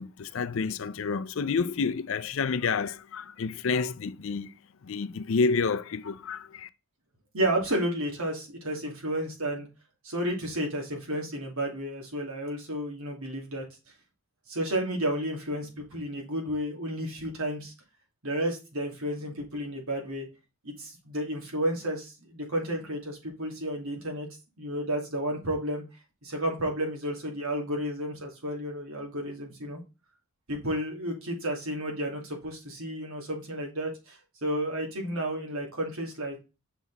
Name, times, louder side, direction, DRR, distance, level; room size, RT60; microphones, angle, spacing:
voice 1, 0.0-4.5 4.8-6.7, left 5 dB, 65° left, 0.5 m, -29 dB
voice 2, 7.3-9.7 10.0-13.6 14.5-17.7 18.2-20.3 20.6-24.3 24.6-25.8 26.2-29.8 30.5-36.4, right 1 dB, 80° right, 2.5 m, -32 dB
6.1 x 4.0 x 4.0 m
head